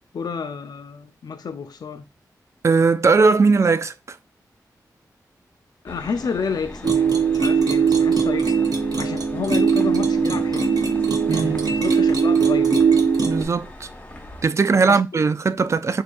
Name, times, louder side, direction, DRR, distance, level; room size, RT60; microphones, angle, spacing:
voice 1, 0.1-2.1 5.8-8.7 9.0-10.8 11.3-12.8 14.7-15.2, left 5 dB, 75° left, 0.6 m, -30 dB
voice 2, 2.6-4.2 11.3-11.7 13.2-13.9 14.4-16.0, right 4 dB, 45° right, 0.3 m, -19 dB
sound 1, 5.9-14.4, left 1 dB, 20° left, 1.1 m, -40 dB
sound 2, 6.8-13.4, right 6 dB, 65° right, 0.9 m, -20 dB
6.4 x 2.8 x 2.6 m
wide cardioid pair, 85°, 7 cm